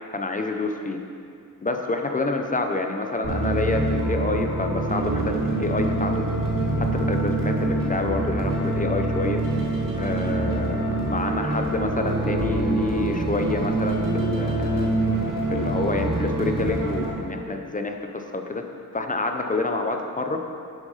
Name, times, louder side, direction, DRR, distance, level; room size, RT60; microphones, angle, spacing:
voice 1, 0.1-1.0 1.6-6.2 6.8-9.4 9.9-14.9 15.5-18.6 18.9-20.4, left 3 dB, 25° left, 4 dB, 0.5 m, -28 dB
sound 1, 3.2-17.1, right 2 dB, 85° right, 2.1 m, -25 dB
7.4 x 6.1 x 5.5 m, 2.5 s
wide cardioid pair, 135°, 33 cm